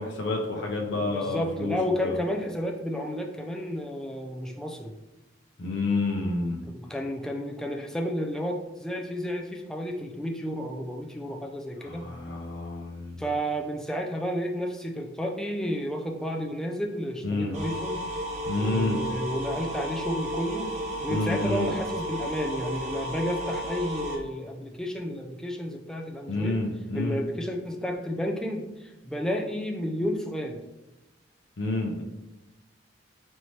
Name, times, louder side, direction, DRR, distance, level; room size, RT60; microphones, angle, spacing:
voice 1, 0.0-2.2 5.6-6.6 11.8-13.2 17.2-17.6 18.5-19.0 21.1-21.7 26.3-27.2 31.6-32.0, left 2 dB, 70° left, 0 dB, 0.6 m, -29 dB
voice 2, 0.9-4.9 6.7-12.1 13.2-18.1 18.6-20.7 21.0-26.6 26.9-30.6, equal, 5° left, 1 dB, 0.4 m, -31 dB
sound 1, 17.5-24.2, equal, 40° right, 1.0 m, -33 dB
4.3 x 3.2 x 2.8 m, 1.0 s
head